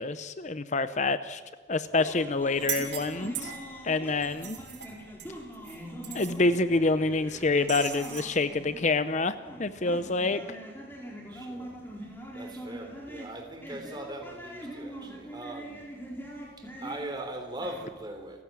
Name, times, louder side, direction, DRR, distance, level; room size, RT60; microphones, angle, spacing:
voice 1, 0.0-1.4 1.7-3.5 3.8-4.6 6.1-10.4, left 3 dB, 40° left, 0.7 m, -27 dB
voice 2, 1.8-2.4 4.0-4.3 11.3-15.9 16.6-18.4, right 1 dB, 25° right, 3.4 m, -41 dB
sound 1, 2.0-17.8, equal, 10° left, 4.2 m, -43 dB
sound 2, 2.5-3.8 4.2-5.8 6.0-6.4 7.7-8.3, right 9 dB, 90° right, 4.8 m, -38 dB
29.5 x 16.0 x 7.4 m
head